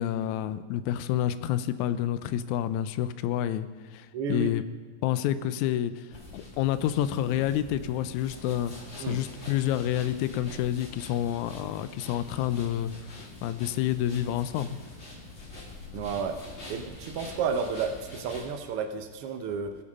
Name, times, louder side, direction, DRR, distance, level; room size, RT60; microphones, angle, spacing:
voice 1, 0.0-4.6 5.0-6.1 6.3-14.8, left 11 dB, 85° left, 13 dB, 2.0 m, -29 dB
voice 2, 4.1-4.5 9.0-9.2 15.9-16.4 16.7-19.8, right 5 dB, 90° right, 6 dB, 1.2 m, -31 dB
sound 1, 6.1-18.5, left 2 dB, 25° left, 1.7 m, -45 dB
18.0 x 7.0 x 5.4 m, 1.4 s
omnidirectional pair, 3.4 m